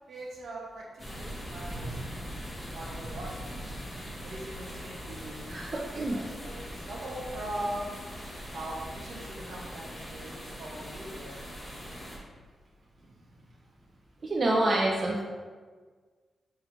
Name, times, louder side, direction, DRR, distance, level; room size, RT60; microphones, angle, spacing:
voice 1, 0.1-0.8 1.1-3.5 3.9-5.7 6.1-8.0 8.5-11.4 13.1-13.4, right 1 dB, 65° right, -3 dB, 1.0 m, -41 dB
sound 1, 1.0-12.2, equal, 15° left, 0.9 m, -41 dB
voice 2, 5.5-6.2 14.2-15.2, right 1 dB, 35° right, -3 dB, 0.4 m, -27 dB
5.0 x 2.4 x 4.4 m, 1.5 s
wide cardioid pair, 170°, 0 cm